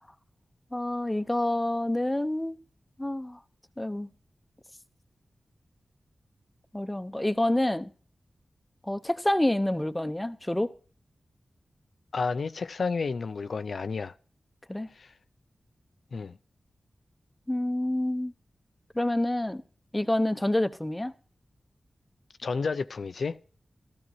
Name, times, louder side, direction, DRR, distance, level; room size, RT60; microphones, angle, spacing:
voice 1, 0.7-2.6 3.0-3.4 3.8-4.1 6.7-7.9 8.8-10.7 14.7-14.9 17.5-18.3 18.9-19.6 19.9-21.1, left 1 dB, 15° left, 0.7 m, -27 dB
voice 2, 12.1-14.1 15.0-15.1 16.1-16.4 22.4-23.4, left 4 dB, 75° left, 0.4 m, -31 dB
13.5 x 13.5 x 2.7 m
cardioid pair, 55°, 0 cm